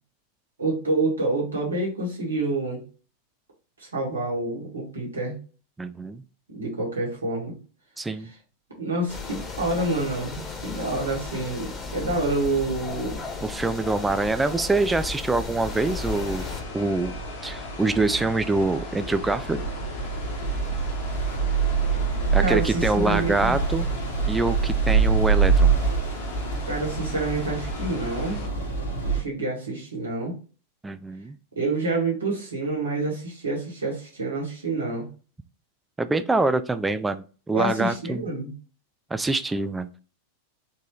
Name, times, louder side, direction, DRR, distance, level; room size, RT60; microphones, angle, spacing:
voice 1, 0.6-2.8 3.8-5.4 6.5-7.6 8.8-13.2 22.4-23.6 26.7-28.4 29.0-30.4 31.6-35.1 37.5-38.5, right 2 dB, 75° right, -2 dB, 1.9 m, -28 dB
voice 2, 5.8-6.2 8.0-8.3 13.4-16.4 16.7-17.2 17.4-19.6 22.3-23.9 24.3-25.7 30.8-31.4 36.0-38.2 39.1-39.9, right 3 dB, 10° right, 11 dB, 0.3 m, -25 dB
sound 1, 9.1-16.6, left 4 dB, 20° left, 1.3 m, -35 dB
sound 2, 11.5-11.7 14.9-15.0 15.3-29.2, right 5 dB, 75° left, 1.6 m, -26 dB
sound 3, 15.7-28.5, left 3 dB, 50° left, 1.2 m, -39 dB
4.3 x 3.1 x 3.1 m, 0.37 s
figure-of-eight pair, 90°, 0 cm